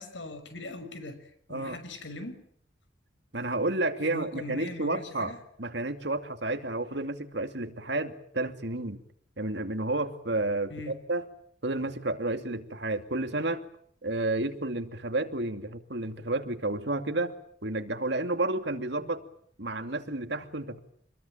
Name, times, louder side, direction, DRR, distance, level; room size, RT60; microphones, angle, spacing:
voice 1, 0.0-2.4 4.0-5.4 10.7-11.0, left 2 dB, 80° left, 10 dB, 6.4 m, -41 dB
voice 2, 3.3-5.3 5.6-9.0 9.4-11.2 11.6-13.6 14.0-17.3 17.6-19.2 19.6-20.8, right 2 dB, 65° right, 7 dB, 2.6 m, -31 dB
26.5 x 21.5 x 9.1 m, 0.64 s
head